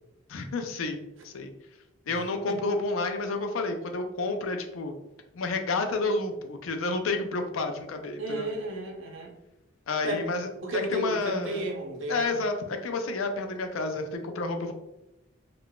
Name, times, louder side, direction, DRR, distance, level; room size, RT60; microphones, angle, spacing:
voice 1, 0.3-1.5 2.1-4.9 5.3-8.5 9.9-10.5 10.9-11.6 12.1-14.7, left 3 dB, 90° left, 5 dB, 0.5 m, -30 dB
voice 2, 8.2-9.3 10.0-12.4, right 1 dB, 70° right, 1 dB, 0.7 m, -33 dB
3.6 x 2.4 x 2.2 m, 0.96 s
head